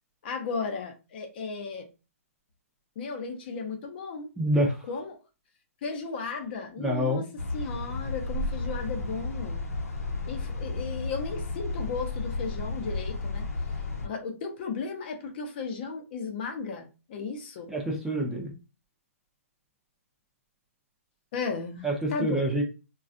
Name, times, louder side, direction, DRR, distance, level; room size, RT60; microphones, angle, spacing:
voice 1, 0.2-1.9 3.0-4.3 4.9-5.2 5.8-7.3 7.5-9.6 10.3-13.5 14.0-17.7 21.3-22.5, left 4 dB, 40° left, 0.7 m, -35 dB
voice 2, 4.4-4.7 6.8-7.2 17.7-18.5 21.8-22.6, equal, 5° right, 0.5 m, -26 dB
sound 1, 7.4-14.1, left 3 dB, 90° left, 0.9 m, -33 dB
3.1 x 2.3 x 2.5 m
hypercardioid pair, 145°, 8 cm